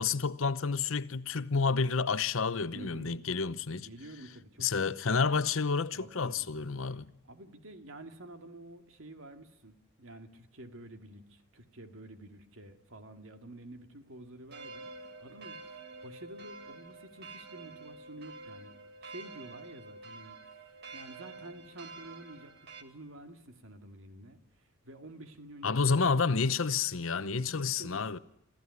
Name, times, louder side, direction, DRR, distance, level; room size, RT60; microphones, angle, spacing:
voice 1, 0.0-3.9 4.6-7.1 25.6-28.2, left 5 dB, 75° left, 0.8 m, -29 dB
voice 2, 2.7-3.2 3.7-4.9 5.9-6.7 7.2-25.9 27.1-28.2, right 1 dB, 70° right, 2.3 m, -50 dB
sound 1, 14.5-22.8, right 3 dB, 55° right, 1.8 m, -48 dB
27.0 x 14.5 x 9.7 m
head